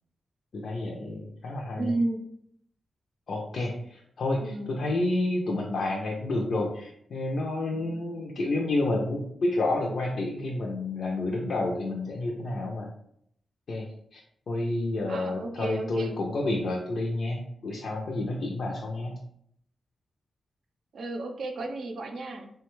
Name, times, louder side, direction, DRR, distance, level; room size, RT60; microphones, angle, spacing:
voice 1, 0.5-1.9 3.3-12.9 13.7-14.2 14.5-19.2, left 2 dB, 65° left, -1 dB, 0.4 m, -30 dB
voice 2, 1.8-2.2 4.4-4.9 15.1-16.1 20.9-22.5, right 2 dB, 75° right, 3 dB, 0.5 m, -32 dB
3.4 x 2.2 x 3.0 m, 0.70 s
wide cardioid pair, 125°, 0 cm